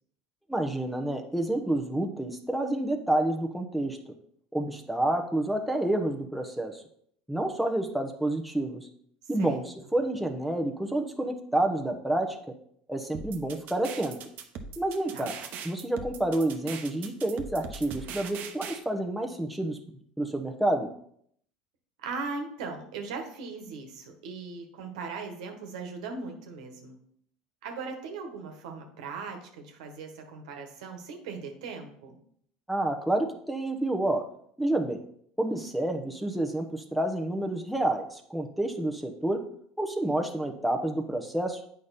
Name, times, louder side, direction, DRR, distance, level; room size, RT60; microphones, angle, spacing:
voice 1, 0.5-4.0 4.5-6.8 7.3-8.9 9.3-12.4 12.9-14.2 14.8-15.3 15.6-19.8 20.2-20.9 32.7-34.2 34.6-35.0 35.4-39.4 39.8-41.6, right 1 dB, ahead, 3 dB, 1.0 m, -29 dB
sound 1, 13.1-18.8, right 6 dB, 55° right, 1.0 m, -40 dB
voice 2, 22.0-27.0 27.6-32.1, right 4 dB, 80° right, 4 dB, 1.4 m, -39 dB
8.3 x 5.2 x 4.2 m, 0.66 s
hypercardioid pair, 90°, 4 cm